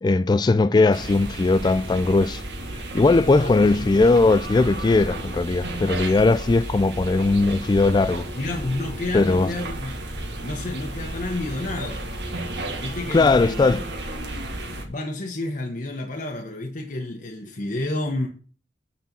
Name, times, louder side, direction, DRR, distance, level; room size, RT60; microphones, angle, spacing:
voice 1, 0.0-2.4 2.9-8.3 9.1-9.5 13.1-13.8, left 3 dB, 25° left, 0.3 m, -19 dB
sound 1, 0.9-14.9, right 1 dB, 75° right, 1.6 m, -33 dB
voice 2, 3.2-3.9 8.4-12.0 12.8-13.9 14.8-18.3, left 2 dB, 50° left, 1.1 m, -30 dB
9.3 x 4.3 x 6.0 m
head